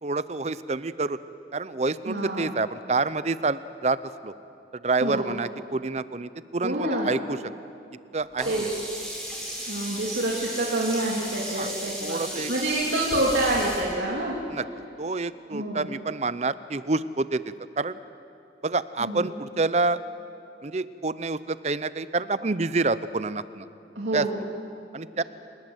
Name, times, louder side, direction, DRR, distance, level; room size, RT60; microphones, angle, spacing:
voice 1, 0.0-1.2 1.5-4.0 4.2-4.3 4.8-7.4 8.1-8.7 11.5-11.7 12.0-12.5 14.5-14.7 15.0-18.0 18.6-20.0 20.6-23.7 24.1-24.3 24.9-25.2, right 3 dB, 35° right, 15 dB, 0.6 m, -28 dB
voice 2, 2.1-2.5 5.0-5.3 6.6-7.1 8.4-8.7 9.6-12.2 12.5-14.4 15.5-15.9 19.0-19.3 23.9-24.4, right 1 dB, 85° right, -4 dB, 2.9 m, -27 dB
Sink (filling or washing), 8.4-13.8, equal, 5° left, 6.2 m, -35 dB
29.5 x 19.5 x 8.0 m, 2.7 s
head